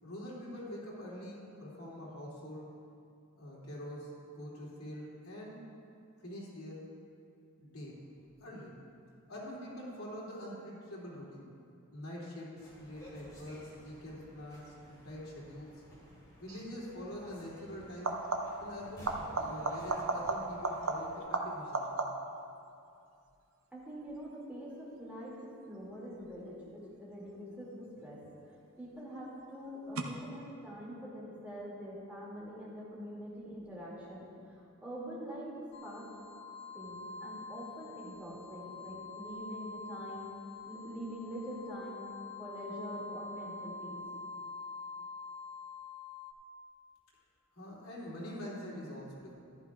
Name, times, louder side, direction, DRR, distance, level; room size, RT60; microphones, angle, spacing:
voice 1, 0.0-2.7 3.3-5.6 6.2-6.9 7.6-8.0 8.4-8.8 9.3-11.5 11.9-15.7 16.4-18.2 18.6-22.1 47.5-49.3, equal, 85° left, -6 dB, 2.8 m, -45 dB
sound 1, 12.6-21.2, equal, 20° left, 2.7 m, -54 dB
sound 2, 16.5-16.7 17.9-18.7 19.0-22.4 27.9-28.4 30.0-30.1, right 3 dB, 70° right, 0.8 m, -35 dB
voice 2, 23.7-28.2 28.8-36.0 36.7-40.3 40.6-42.0 42.4-44.0, equal, 10° right, -7 dB, 2.4 m, -44 dB
sound 3, 35.7-46.3, left 3 dB, 55° left, 0.7 m, -46 dB
14.5 x 11.5 x 2.4 m, 2.5 s
head